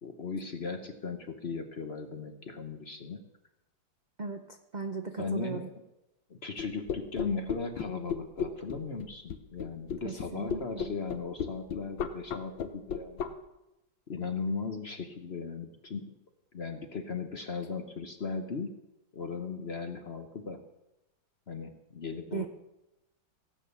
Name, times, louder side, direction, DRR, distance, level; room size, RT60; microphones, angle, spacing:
voice 1, 0.0-3.2 5.2-5.6 6.3-13.4 14.1-16.1 16.5-18.7 19.1-20.6 21.5-22.5, left 4 dB, 40° left, 7 dB, 1.0 m, -37 dB
voice 2, 4.2-5.7 10.0-10.9 22.3-22.5, right 4 dB, 60° right, 6 dB, 0.4 m, -37 dB
sound 1, 6.6-13.3, left 7 dB, 75° left, 1.7 m, -33 dB
17.0 x 8.5 x 6.9 m, 0.93 s
omnidirectional pair, 2.1 m